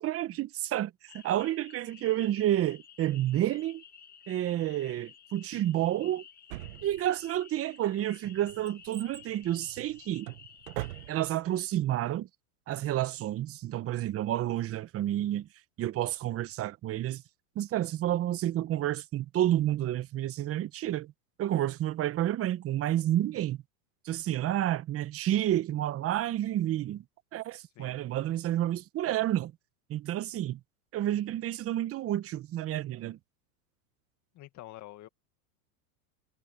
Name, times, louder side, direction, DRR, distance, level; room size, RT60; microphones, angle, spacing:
voice 1, 0.0-3.8 4.3-6.2 6.8-10.3 11.1-12.3 12.7-15.5 15.8-17.2 17.5-21.1 21.4-23.6 24.0-27.0 27.3-29.5 29.9-30.6 30.9-33.2, right 13 dB, 30° right, 1.1 m, -30 dB
sound 1, 1.1-11.1, left 7 dB, 20° left, 1.7 m, -53 dB
Drawer open or close, 6.5-7.4 8.0-11.5 11.7-11.8, right 19 dB, 70° right, 1.6 m, -42 dB
voice 2, 34.3-35.1, left 16 dB, 40° left, 2.0 m, -47 dB
supercardioid pair, 120°, 44 cm